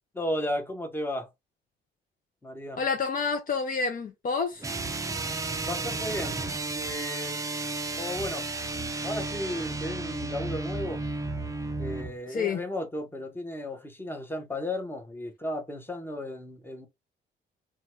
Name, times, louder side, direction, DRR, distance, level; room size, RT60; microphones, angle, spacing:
voice 1, 0.1-1.3 2.4-2.8 5.7-6.4 6.7-7.4 8.0-8.5 9.0-11.0 11.8-16.9, left 1 dB, 10° left, 0.9 m, -34 dB
voice 2, 2.8-4.7 12.3-12.6, left 5 dB, 45° left, 0.6 m, -28 dB
sound 1, 4.6-12.1, right 3 dB, 15° right, 0.4 m, -33 dB
2.6 x 2.3 x 3.0 m
cardioid pair, 90°, 20 cm